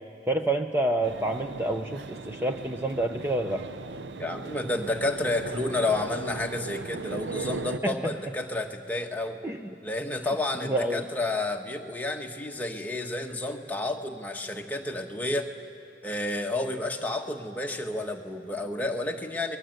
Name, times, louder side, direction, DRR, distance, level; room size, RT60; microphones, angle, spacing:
voice 1, 0.3-3.7 7.8-7.9 9.4-9.6 10.6-11.0, right 1 dB, 15° right, 4 dB, 0.8 m, -28 dB
sound 1, 1.0-7.8, right 3 dB, 65° right, 0.7 m, -38 dB
voice 2, 4.2-9.4 9.8-15.5 16.0-19.6, left 2 dB, 10° left, 2 dB, 1.3 m, -30 dB
29.5 x 21.0 x 7.9 m, 2.5 s
head